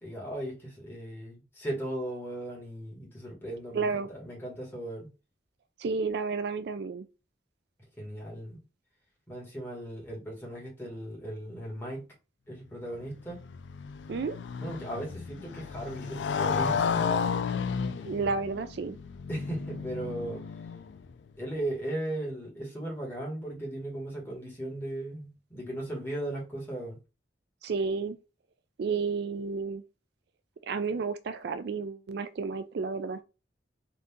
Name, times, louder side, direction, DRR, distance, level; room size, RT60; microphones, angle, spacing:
voice 1, 0.0-5.1 8.0-8.6 9.3-12.1 12.5-13.4 14.6-17.0 19.3-20.4 21.4-27.0, right 1 dB, 15° left, 1.7 m, -37 dB
voice 2, 3.7-4.1 5.8-7.1 14.1-14.4 18.0-19.0 27.6-28.2 28.8-29.8 30.7-33.2, right 4 dB, 65° right, 0.4 m, -31 dB
Motorcycle, 13.0-21.1, left 6 dB, 75° left, 0.4 m, -33 dB
3.9 x 2.7 x 3.5 m
head